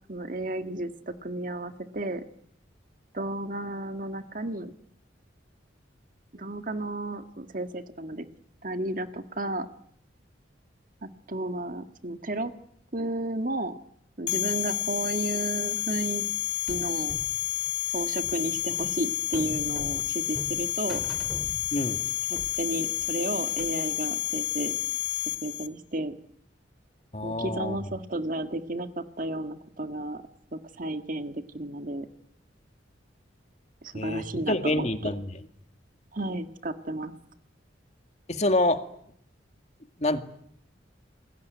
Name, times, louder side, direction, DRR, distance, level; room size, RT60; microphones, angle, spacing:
voice 1, 0.1-2.2 3.1-4.7 6.3-8.3 8.6-9.7 11.0-12.5 12.9-13.7 14.2-16.2 16.7-17.2 17.9-21.0 22.3-24.8 25.4-26.1 27.2-30.2 30.5-32.1 33.8-35.1 36.1-37.1, right 1 dB, 45° right, 9 dB, 1.7 m, -33 dB
sound 1, 14.3-25.7, left 15 dB, 70° left, 1.5 m, -30 dB
sound 2, 16.7-22.1 22.4-23.9, equal, ahead, 2.2 m, -42 dB
voice 2, 27.1-27.8 33.9-35.3 38.3-38.8 40.0-40.2, left 1 dB, 35° left, 8 dB, 2.1 m, -26 dB
28.0 x 21.5 x 9.4 m, 0.68 s
head